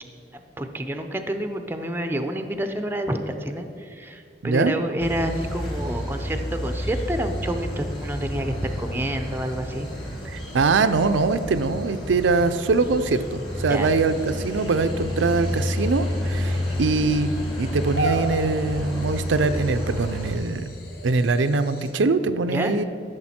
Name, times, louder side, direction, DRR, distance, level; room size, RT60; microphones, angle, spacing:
voice 1, 0.3-9.9 13.7-13.9 22.5-22.8, right 1 dB, 10° right, 7 dB, 0.5 m, -28 dB
voice 2, 4.4-4.7 10.2-20.6 21.0-22.8, right 3 dB, 90° right, 10 dB, 0.5 m, -23 dB
sound 1, 5.0-20.4, left 1 dB, 25° left, 2.0 m, -30 dB
sound 2, 13.7-21.9, equal, 55° left, 1.4 m, -37 dB
13.0 x 6.6 x 4.3 m, 2.6 s
head